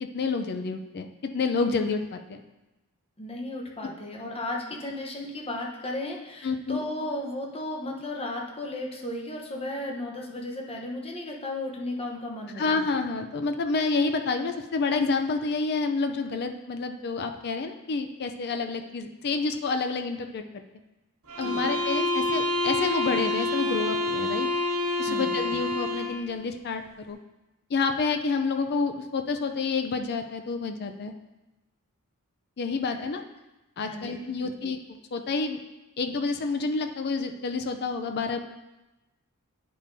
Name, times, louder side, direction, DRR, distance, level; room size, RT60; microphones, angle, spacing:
voice 1, 0.0-2.4 6.4-6.8 12.6-20.6 21.4-24.5 25.0-26.8 27.1-27.2 27.7-31.1 32.6-33.2 33.8-35.6 36.0-38.4, left 4 dB, 50° left, 6 dB, 0.5 m, -29 dB
voice 2, 3.2-12.6 21.4-21.6 25.1-25.4 33.0-33.1 33.9-34.2 34.4-34.5, left 1 dB, 25° left, 0 dB, 0.9 m, -34 dB
sound 1, 21.3-26.2, left 2 dB, 85° right, 1.5 m, -27 dB
9.9 x 5.3 x 2.7 m, 1.0 s
head